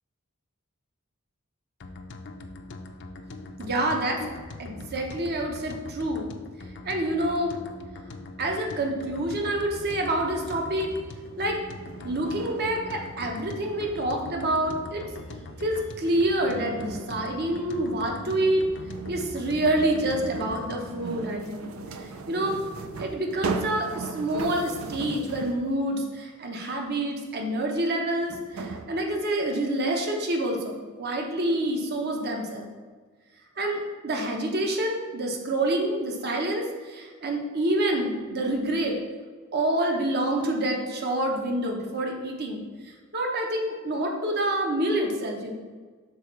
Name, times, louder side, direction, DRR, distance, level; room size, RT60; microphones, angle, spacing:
sound 1, 1.8-21.0, left 2 dB, 55° left, 0.6 m, -42 dB
voice 1, 3.6-4.3 4.6-6.3 6.8-7.6 8.4-10.9 11.4-11.6 12.0-15.0 15.6-18.6 19.1-21.7 22.0-22.6 23.0-32.7 33.6-39.0 39.5-45.5, right 1 dB, 50° right, 1 dB, 1.0 m, -27 dB
sound 2, 10.6-25.8 27.5-27.6 28.3-28.9, right 3 dB, 70° right, 0.5 m, -39 dB
6.5 x 4.1 x 5.9 m, 1.5 s
head